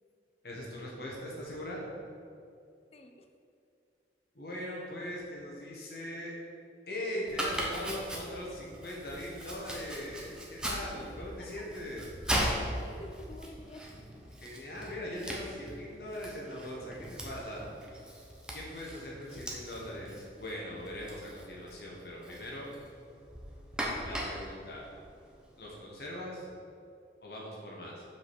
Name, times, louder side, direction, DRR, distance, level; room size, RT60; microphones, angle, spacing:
voice 1, 0.4-1.8 4.3-6.3 6.9-12.0 14.4-17.6 18.5-22.7 24.0-24.9 25.6-26.5 27.2-28.0, left 1 dB, 60° left, -3 dB, 1.5 m, -40 dB
voice 2, 2.9-3.3 11.4-11.5 12.4-13.9, left 1 dB, 35° left, 5 dB, 0.5 m, -50 dB
Domestic sounds home sounds, 7.3-25.7, equal, 5° right, 0.9 m, -39 dB
6.0 x 5.2 x 6.3 m, 2.5 s
head